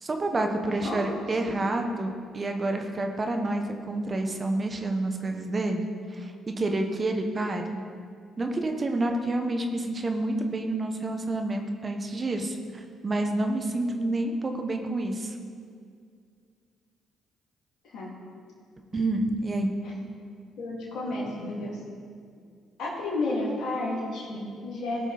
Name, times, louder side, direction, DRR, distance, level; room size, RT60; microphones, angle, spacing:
voice 1, 0.0-7.8 8.4-15.4 18.9-19.7, right 2 dB, 35° right, 4 dB, 1.2 m, -29 dB
voice 2, 20.6-21.8 22.8-25.1, left 2 dB, 60° left, -5 dB, 2.9 m, -31 dB
17.0 x 5.9 x 4.2 m, 2.2 s
hypercardioid pair, 50°, 0 cm